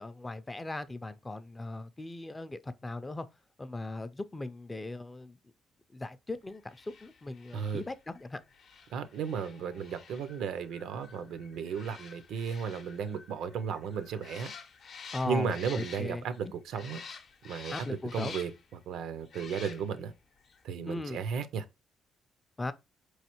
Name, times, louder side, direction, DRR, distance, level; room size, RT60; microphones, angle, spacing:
voice 1, 0.0-3.3 3.6-5.4 5.9-8.4 15.1-16.3 17.7-18.3 20.8-21.2 22.6-22.7, left 2 dB, 20° left, 0.4 m, -38 dB
sound 1, 6.7-16.4 16.7-18.7 19.3-20.1 20.5-20.6, left 5 dB, 60° left, 0.6 m, -49 dB
voice 2, 7.5-7.8 8.9-14.5 15.3-17.0 17.4-18.5 18.9-20.1 20.6-21.6, right 6 dB, 80° right, 0.4 m, -34 dB
4.3 x 3.1 x 2.9 m
cardioid pair, 90°, 0 cm